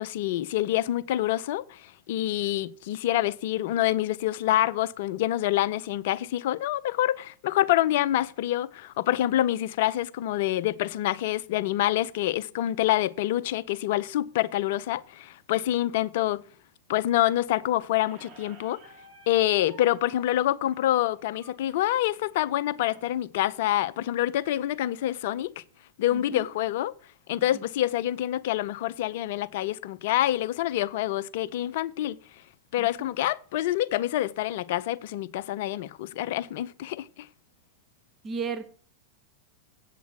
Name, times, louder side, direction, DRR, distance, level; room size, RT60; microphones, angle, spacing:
voice 1, 0.0-16.4 16.9-18.8 19.3-25.6 26.0-26.9 27.3-32.2 32.7-37.3, left 14 dB, 50° left, 0.5 m, -26 dB
Squeak, 18.0-23.1, right 3 dB, 45° right, 2.4 m, -53 dB
voice 2, 26.1-26.5 27.5-27.6 32.8-33.1 38.2-38.7, right 5 dB, 25° right, 0.9 m, -35 dB
8.2 x 8.1 x 6.1 m
figure-of-eight pair, 90°, 0 cm